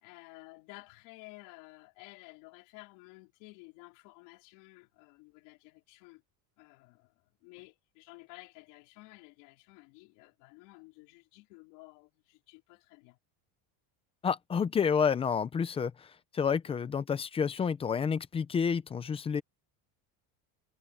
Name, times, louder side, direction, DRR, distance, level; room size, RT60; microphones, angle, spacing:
voice 1, 0.0-6.2 6.6-7.1 7.4-13.2 16.7-16.8, left 24 dB, 70° left, 3.2 m, -53 dB
voice 2, 14.2-16.1 16.3-19.4, left 6 dB, 15° left, 0.4 m, -29 dB
cardioid pair, 170°, 43 cm